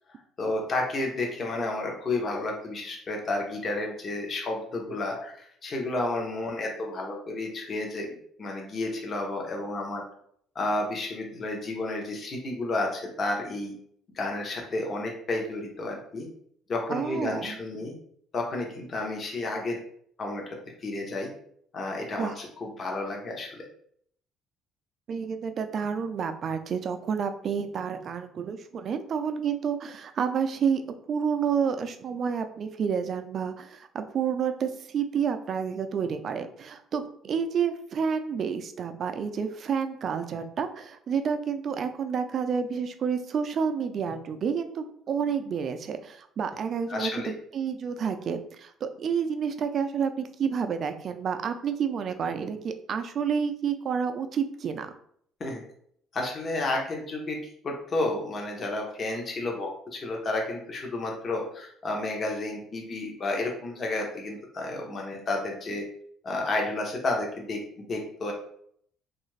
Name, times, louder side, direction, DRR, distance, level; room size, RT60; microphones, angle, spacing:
voice 1, 0.1-10.0 10.5-13.8 14.1-16.3 16.7-18.0 18.3-19.8 20.2-21.3 21.7-23.6 46.9-47.3 55.4-55.6 56.1-57.4 57.6-65.8 66.2-68.3, left 2 dB, 40° left, 1 dB, 0.7 m, -31 dB
voice 2, 16.9-17.6 22.1-22.4 25.1-30.8 31.1-54.9, right 6 dB, 45° right, 8 dB, 0.3 m, -29 dB
2.6 x 2.4 x 3.1 m, 0.66 s
cardioid pair, 120°, 0 cm